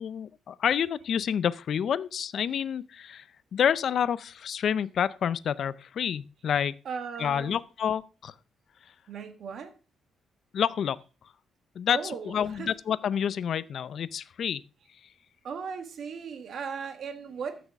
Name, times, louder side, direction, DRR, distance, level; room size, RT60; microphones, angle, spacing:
voice 1, 0.0-3.2 3.5-6.7 7.2-8.3 10.5-11.0 11.8-14.6, left 8 dB, 55° left, 0.5 m, -28 dB
voice 2, 6.8-7.6 9.1-9.7 11.9-12.3 12.6-12.7 15.4-17.6, right 6 dB, 55° right, 1.5 m, -37 dB
14.5 x 6.1 x 3.5 m
cardioid pair, 140°, 0 cm